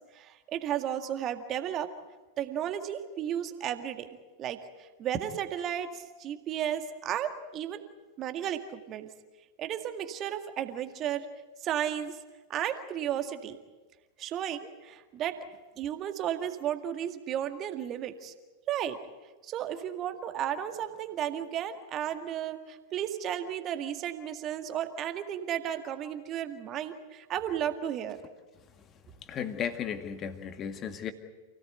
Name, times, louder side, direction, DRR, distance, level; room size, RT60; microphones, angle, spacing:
voice 1, 0.1-1.9 2.4-4.1 4.4-4.6 5.0-7.8 8.2-9.1 9.6-11.3 11.6-12.1 12.5-13.6 14.2-15.4 15.8-18.3 18.7-19.0 19.4-28.2, right 10 dB, 30° right, 7 dB, 1.9 m, -33 dB
voice 2, 29.2-31.1, left 8 dB, 30° left, 8 dB, 2.1 m, -35 dB
28.5 x 17.5 x 8.1 m, 1.2 s
figure-of-eight pair, 90°, 0 cm